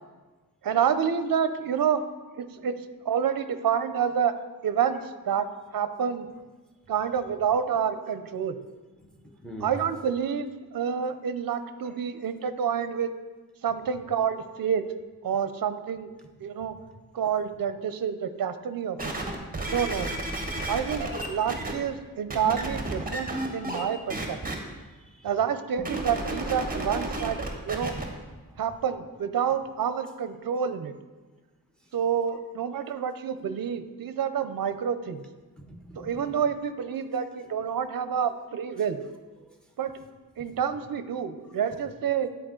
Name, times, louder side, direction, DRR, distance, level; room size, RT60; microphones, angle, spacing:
voice 1, 0.6-2.0 2.4-2.7 3.1-4.3 4.6-5.5 5.7-6.3 6.9-8.6 9.6-13.1 13.6-14.8 15.2-16.1 16.4-16.8 17.1-19.1 19.7-20.2 20.7-24.4 25.2-27.4 27.6-27.9 28.6-30.9 31.9-35.2 36.0-39.0 39.8-39.9 40.4-42.3, right 7 dB, 65° right, 11 dB, 0.5 m, -28 dB
voice 2, 9.0-9.8 11.8-11.9 24.9-25.3 28.5-28.6 32.8-32.9 35.5-36.4 39.4-39.6, equal, ahead, 3 dB, 0.9 m, -46 dB
sound 1, 19.0-21.7 22.3-23.8 24.1-24.5 25.8-28.0 28.7-28.8, right 2 dB, 25° right, 1.0 m, -32 dB
10.5 x 4.5 x 3.7 m, 1.3 s
wide cardioid pair, 120°, 37 cm